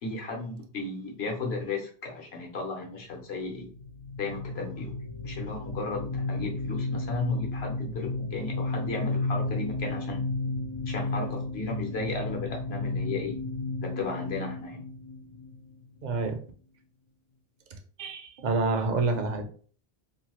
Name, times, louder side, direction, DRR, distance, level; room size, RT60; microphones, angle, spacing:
voice 1, 0.0-3.7 4.2-4.9 5.2-10.2 10.9-13.4 13.8-14.8, left 3 dB, 80° left, 0 dB, 1.1 m, -34 dB
sound 1, 3.7-16.1, left 2 dB, 55° left, 0.4 m, -33 dB
voice 2, 16.0-16.4 18.0-19.5, right 3 dB, 55° right, 5 dB, 0.6 m, -28 dB
2.7 x 2.2 x 3.0 m, 0.43 s
omnidirectional pair, 1.0 m